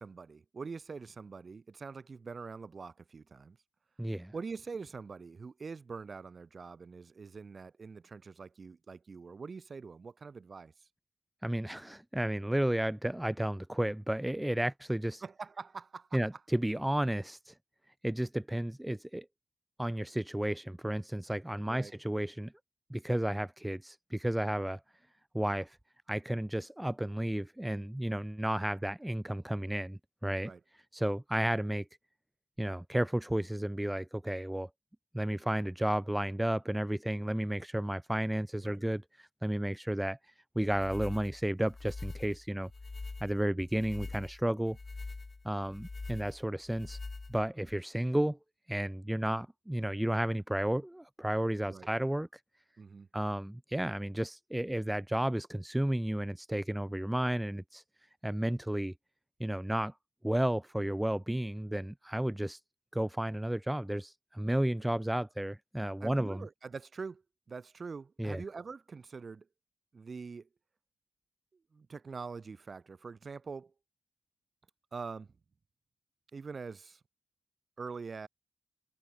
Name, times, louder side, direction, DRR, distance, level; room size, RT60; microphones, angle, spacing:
voice 1, 0.0-3.6 4.3-10.9 15.2-16.4 21.6-21.9 30.4-30.6 38.6-38.8 51.7-51.9 52.8-53.1 66.0-67.2 67.5-69.5 69.9-70.5 71.7-73.7 74.9-75.3 76.3-77.0 77.8-78.3, right 4 dB, 50° right, 6.3 m, -44 dB
voice 2, 4.0-4.3 11.4-15.2 16.1-17.5 18.0-19.2 19.8-22.5 22.9-24.8 25.3-25.8 26.1-30.5 30.9-31.8 32.6-34.7 35.1-40.2 40.5-42.7 43.2-44.8 45.4-47.0 47.3-48.4 48.7-52.3 53.1-57.8 58.2-58.9 59.4-59.9 60.2-62.6 62.9-66.5 68.2-68.4, right 1 dB, 10° right, 1.6 m, -32 dB
sound 1, 40.6-47.8, left 3 dB, 35° left, 5.3 m, -44 dB
cardioid pair, 50°, 0 cm